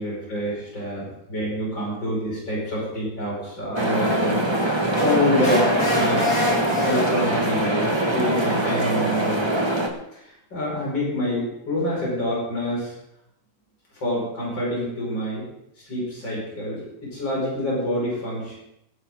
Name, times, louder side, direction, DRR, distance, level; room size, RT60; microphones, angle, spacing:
voice 1, 0.0-4.3 5.0-6.3 6.8-9.5 10.5-12.9 14.0-15.5 15.9-18.6, left 1 dB, 90° left, -5 dB, 6.5 m, -26 dB
sound 1, 3.8-9.9, right 1 dB, 15° right, 1.5 m, -23 dB
sound 2, 4.9-7.5, left 2 dB, 75° left, 4.6 m, -26 dB
21.5 x 10.0 x 3.9 m, 0.81 s
omnidirectional pair, 2.0 m